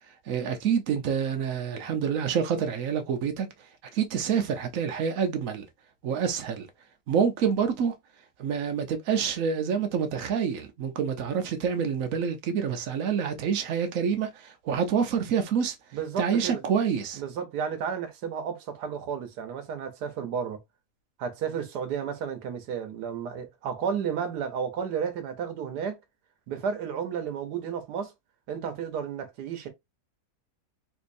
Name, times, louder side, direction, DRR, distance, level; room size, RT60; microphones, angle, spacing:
voice 1, 0.3-3.5 3.9-5.7 6.0-6.7 7.1-7.9 8.4-15.8 16.2-17.2, right 7 dB, 60° right, 1.1 m, -27 dB
voice 2, 15.9-16.6 17.2-20.6 21.2-26.0 26.5-28.1 28.5-29.7, right 7 dB, 80° right, 1.4 m, -32 dB
4.2 x 2.7 x 2.5 m
omnidirectional pair, 1.7 m